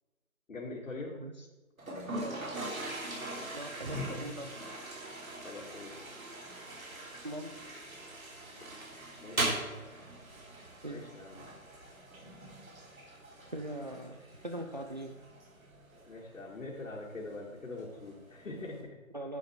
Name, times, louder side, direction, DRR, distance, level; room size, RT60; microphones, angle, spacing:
voice 1, 0.5-1.2 5.4-6.0 8.6-8.7 9.2-9.4 9.7-9.9 10.9-11.5 16.1-19.0, left 2 dB, 65° left, -5 dB, 2.7 m, -43 dB
Toilet flush, 1.8-18.8, right 2 dB, 75° right, 3.8 m, -41 dB
voice 2, 2.2-2.5 3.5-4.5 7.2-7.5 10.8-11.0 13.5-14.2 14.4-15.1 19.1-19.4, right 1 dB, 30° right, 4 dB, 0.6 m, -40 dB
11.0 x 8.1 x 4.8 m, 1.2 s
figure-of-eight pair, 165°, 42 cm